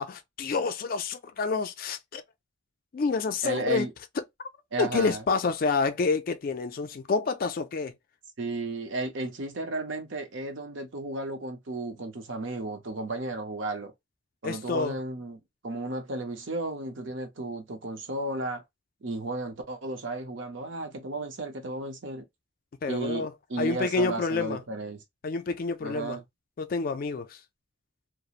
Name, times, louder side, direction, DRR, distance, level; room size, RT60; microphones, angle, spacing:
voice 1, 0.0-2.2 2.9-3.9 4.8-7.9 14.4-15.0 22.8-23.3 23.6-24.6 25.2-26.2 26.6-27.4, left 4 dB, 45° left, 0.3 m, -28 dB
voice 2, 3.4-3.9 4.7-5.2 8.4-13.9 14.4-18.6 19.0-22.2 22.9-25.0 25.8-26.2, right 2 dB, 60° right, 0.7 m, -34 dB
2.8 x 2.0 x 2.4 m
head